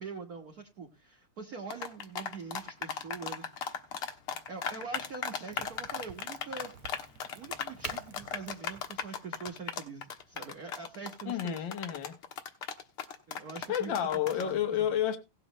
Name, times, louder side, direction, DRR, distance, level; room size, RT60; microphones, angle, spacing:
voice 1, 0.0-3.5 4.5-6.7 7.3-11.7 13.3-15.0, right 5 dB, 45° right, 1.7 m, -44 dB
sound 1, 1.7-14.5, left 7 dB, 85° left, 2.3 m, -36 dB
Crack, 5.5-11.0, right 9 dB, 80° right, 1.9 m, -49 dB
voice 2, 11.3-12.2 13.7-15.2, left 10 dB, 60° left, 2.0 m, -30 dB
18.0 x 7.8 x 3.0 m
omnidirectional pair, 2.4 m